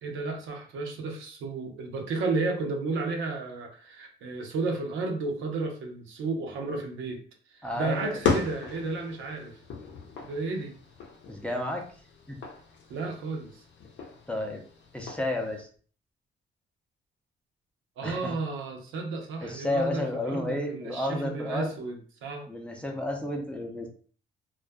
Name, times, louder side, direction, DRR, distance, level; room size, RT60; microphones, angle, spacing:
voice 1, 0.0-7.2 7.5-9.6 10.2-10.7 12.9-13.6 18.0-22.5, right 3 dB, 80° right, 1 dB, 0.6 m, -33 dB
voice 2, 7.6-8.2 11.3-11.8 12.3-12.4 14.3-14.6 14.9-15.7 18.0-18.3 19.4-21.7 22.5-23.9, left 1 dB, 5° left, 1 dB, 0.5 m, -31 dB
sound 1, 7.7-15.6, left 5 dB, 65° left, 0.6 m, -36 dB
2.5 x 2.3 x 2.2 m, 0.43 s
cardioid pair, 90°, 20 cm